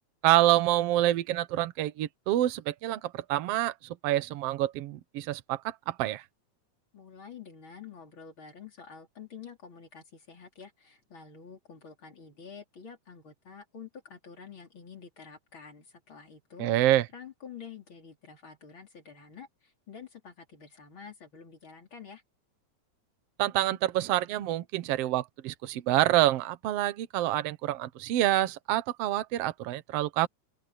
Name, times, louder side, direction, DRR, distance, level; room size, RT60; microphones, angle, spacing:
voice 1, 0.2-3.7 4.0-6.2 16.6-17.1 23.4-30.3, right 14 dB, 65° right, 1.7 m, -27 dB
voice 2, 6.9-16.7 17.1-22.2, left 6 dB, 40° left, 4.1 m, -48 dB
open air
omnidirectional pair, 3.6 m